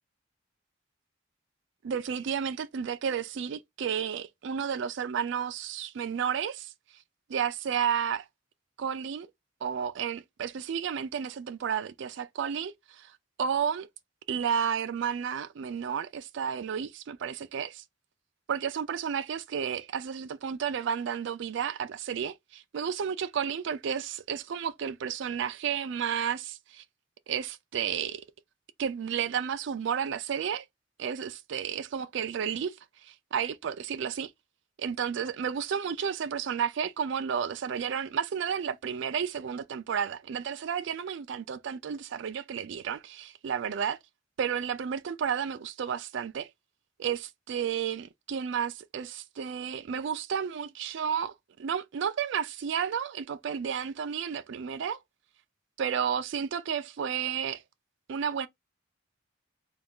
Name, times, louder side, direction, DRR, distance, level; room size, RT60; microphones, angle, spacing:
voice 1, 1.8-6.7 7.3-8.3 8.8-9.3 9.6-13.1 13.4-13.9 14.3-17.8 18.5-26.8 27.3-28.2 28.8-30.7 31.0-34.3 34.8-44.0 44.4-46.5 47.0-51.3 51.6-55.0 55.8-57.6 58.1-58.5, right 7 dB, 65° right, 0.4 m, -32 dB
3.3 x 2.3 x 3.6 m
head